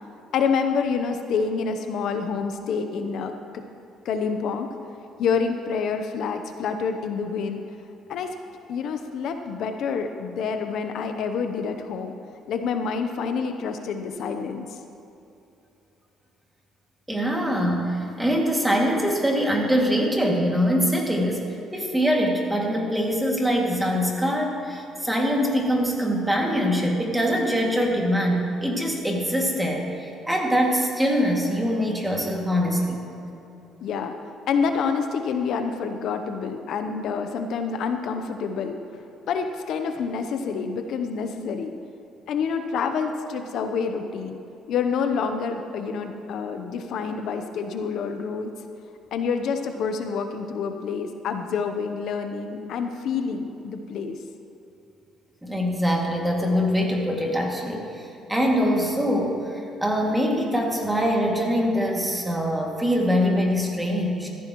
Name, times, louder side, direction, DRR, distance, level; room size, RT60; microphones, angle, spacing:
voice 1, 0.3-3.3 4.0-4.7 5.2-7.6 8.1-8.3 8.7-12.1 12.5-14.8 33.8-34.1 34.5-38.8 39.3-41.7 42.3-44.4 44.7-48.5 49.1-54.2, left 5 dB, 70° left, 6 dB, 0.8 m, -27 dB
voice 2, 17.1-33.0 55.4-64.3, equal, 10° right, -1 dB, 2.3 m, -23 dB
14.5 x 14.5 x 3.1 m, 2.9 s
cardioid pair, 100°, 0 cm